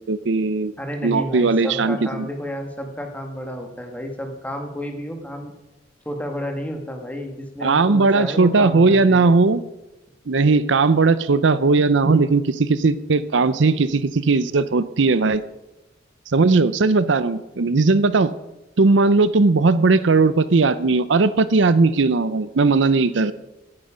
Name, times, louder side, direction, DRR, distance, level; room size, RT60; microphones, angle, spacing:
voice 1, 0.1-0.7 1.0-2.2 7.6-9.6 10.3-15.4 16.3-18.3 18.8-23.3, right 3 dB, 75° right, 14 dB, 0.6 m, -18 dB
voice 2, 0.8-5.5 6.0-9.3, equal, 10° left, 4 dB, 1.7 m, -31 dB
17.5 x 9.7 x 5.1 m, 1.0 s
head